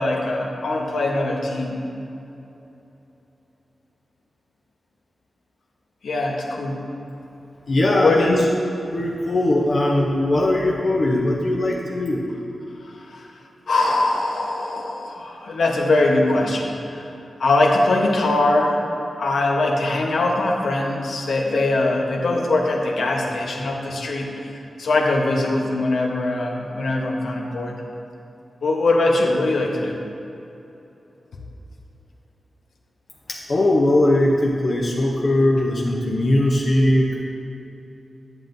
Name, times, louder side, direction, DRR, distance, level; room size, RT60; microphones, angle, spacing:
voice 1, 0.0-1.8 6.0-6.8 7.8-8.5 13.1-13.2 13.7-17.0 17.4-18.8 19.2-24.3 24.8-27.7 28.6-30.0, left 2 dB, 85° left, 0 dB, 0.9 m, -21 dB
voice 2, 7.7-8.3 8.9-12.2 33.3-37.2, left 1 dB, 40° left, -3 dB, 0.6 m, -20 dB
10.5 x 7.5 x 2.6 m, 2.9 s
wide cardioid pair, 170°, 0 cm